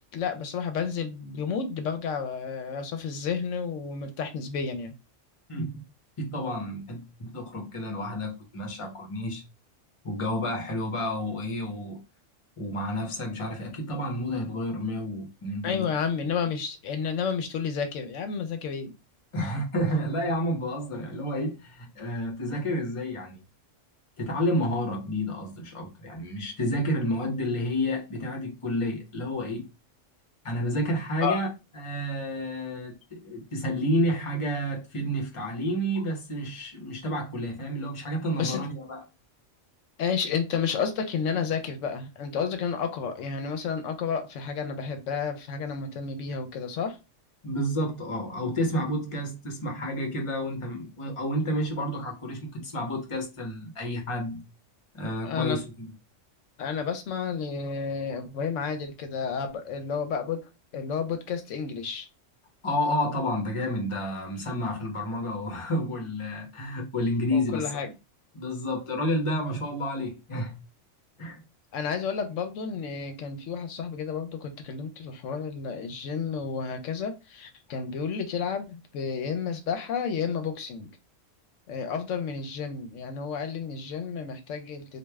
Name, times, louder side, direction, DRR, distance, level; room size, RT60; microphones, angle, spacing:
voice 1, 0.1-4.9 15.6-18.9 19.4-19.5 31.2-31.4 38.4-38.6 40.0-47.0 55.2-55.6 56.6-60.4 60.7-62.1 67.3-67.9 71.7-80.9 81.7-85.0, left 6 dB, 80° left, 0.9 m, -31 dB
voice 2, 5.5-5.8 6.2-9.4 10.0-12.0 12.6-15.9 19.3-23.4 24.2-29.6 30.4-31.5 31.7-39.0 47.4-54.4 54.9-55.9 62.6-67.6 68.3-70.6 71.2-71.4, equal, 30° left, 0.8 m, -30 dB
3.1 x 2.4 x 3.4 m
omnidirectional pair, 1.3 m